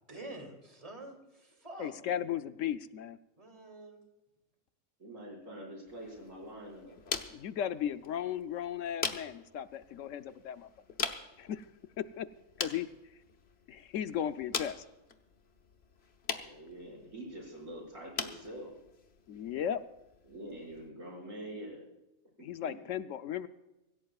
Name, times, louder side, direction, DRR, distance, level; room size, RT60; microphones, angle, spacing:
voice 1, 0.1-1.9 3.4-4.0, right 2 dB, 25° right, 3 dB, 2.8 m, -47 dB
voice 2, 1.8-3.2 7.3-10.7 11.4-11.6 12.2-12.3 12.6-12.9 13.7-14.8 19.3-19.8 22.4-23.5, left 9 dB, 75° left, 11 dB, 1.0 m, -36 dB
voice 3, 5.0-6.9 16.4-18.7 20.2-21.9 22.4-22.7, right 1 dB, 75° right, -3 dB, 6.2 m, -45 dB
sound 1, 5.9-20.9, left 5 dB, 55° left, 1.3 m, -43 dB
25.0 x 16.5 x 2.4 m, 1.0 s
omnidirectional pair, 1.4 m